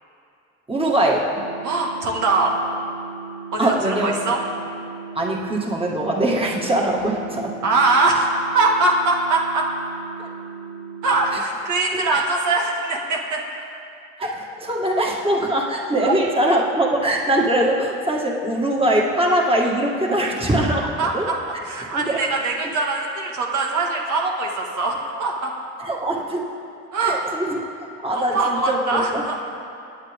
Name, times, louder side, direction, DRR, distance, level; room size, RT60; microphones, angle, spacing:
voice 1, 0.7-1.3 3.6-4.1 5.2-7.6 10.2-10.3 11.9-12.2 14.2-20.9 21.1-21.2 21.9-22.2 25.8-26.5 27.0-27.7 28.0-29.2, right 1 dB, 20° right, -2 dB, 1.9 m, -22 dB
sound 1, 1.4-11.4, right 7 dB, 55° right, 0.8 m, -37 dB
voice 2, 1.6-2.5 3.5-4.4 7.6-9.7 11.0-13.4 16.0-16.1 20.7-25.5 26.9-27.2 28.1-29.3, right 3 dB, 75° right, -1 dB, 1.9 m, -22 dB
25.5 x 9.3 x 3.6 m, 2.6 s
cardioid pair, 90°, 30 cm